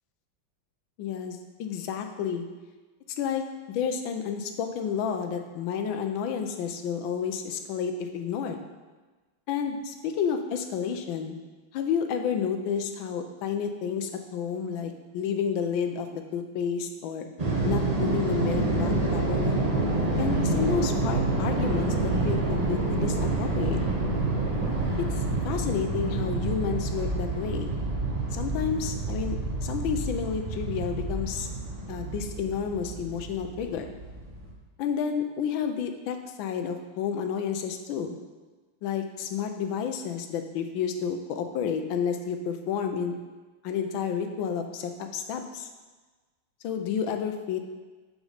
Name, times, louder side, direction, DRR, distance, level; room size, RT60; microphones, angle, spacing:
voice 1, 1.0-2.5 3.2-8.6 9.5-11.4 11.7-17.3 17.6-19.6 20.2-23.8 25.0-27.8 28.3-29.4 29.6-31.5 31.9-33.9 34.8-38.2 38.8-43.2 43.6-45.7 46.6-47.6, left 7 dB, 90° left, 6 dB, 1.4 m, -30 dB
sound 1, 17.4-34.5, right 2 dB, 30° right, 0.7 m, -28 dB
sound 2, 19.9-25.1, right 3 dB, 75° right, 1.9 m, -33 dB
6.2 x 5.3 x 5.0 m, 1.3 s
omnidirectional pair, 2.1 m